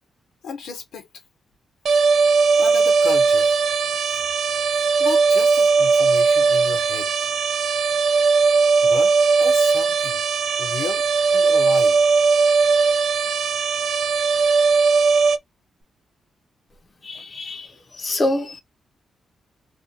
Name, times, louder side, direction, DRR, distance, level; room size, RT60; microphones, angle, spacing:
voice 1, 0.4-1.1 2.6-3.5 5.0-7.1 8.8-10.2 10.6-11.0 11.3-12.0, left 6 dB, 85° left, 0.8 m, -33 dB
sound 1, 1.9-15.4, right 4 dB, 60° right, 0.3 m, -18 dB
voice 2, 17.0-18.6, left 1 dB, 30° left, 0.5 m, -26 dB
2.4 x 2.1 x 2.6 m
cardioid pair, 105°, 0 cm